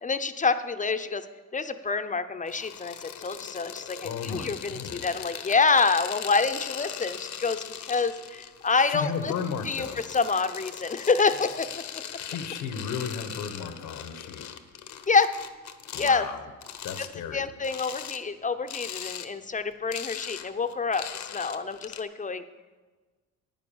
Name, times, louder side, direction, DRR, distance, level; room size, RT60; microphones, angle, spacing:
voice 1, 0.0-1.3 1.5-9.3 9.6-11.8 15.1-15.3 16.0-16.2 17.3-21.0 21.3-22.4, left 4 dB, 25° left, 11 dB, 0.7 m, -27 dB
sound 1, 2.5-16.2 16.6-17.1 17.6-18.2 18.7-19.3 19.6-22.0, left 9 dB, 70° left, 1.0 m, -40 dB
voice 2, 4.0-5.0 8.8-10.0 12.2-14.4 15.9-16.5 16.8-17.4, left 6 dB, 85° left, 9 dB, 1.2 m, -34 dB
11.0 x 9.2 x 7.2 m, 1.3 s
cardioid pair, 90°, 30 cm